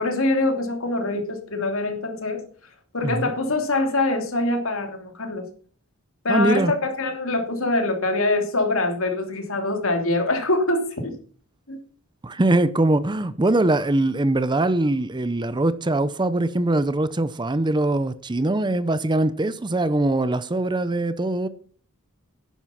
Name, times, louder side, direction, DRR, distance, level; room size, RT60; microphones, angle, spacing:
voice 1, 0.0-2.4 2.9-5.5 6.2-11.1 11.7-11.8, left 2 dB, 65° left, 3.0 m, -24 dB
voice 2, 6.3-6.7 12.2-21.5, right 2 dB, 20° right, 0.6 m, -22 dB
11.0 x 9.7 x 5.8 m
head